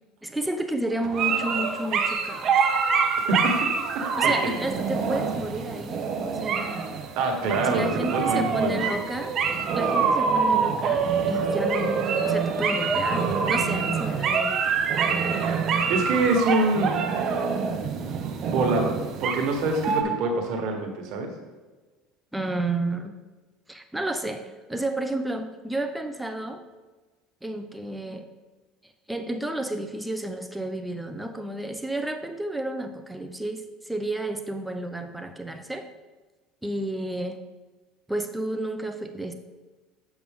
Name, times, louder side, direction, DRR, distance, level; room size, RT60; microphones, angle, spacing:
voice 1, 0.2-2.6 4.2-7.0 7.6-9.3 9.7-14.7 19.9-20.2 22.3-23.2 23.7-26.6 27.4-28.3 29.1-35.9 36.6-37.4 38.1-39.3, right 1 dB, 5° right, 6 dB, 0.8 m, -31 dB
sound 1, 1.0-20.0, right 5 dB, 50° right, 0.8 m, -25 dB
voice 2, 3.3-4.5 7.2-9.0 15.9-17.0 18.5-18.9 19.2-21.3, right 2 dB, 65° right, 2 dB, 1.6 m, -25 dB
7.6 x 5.9 x 3.7 m, 1.3 s
supercardioid pair, 95°, 0 cm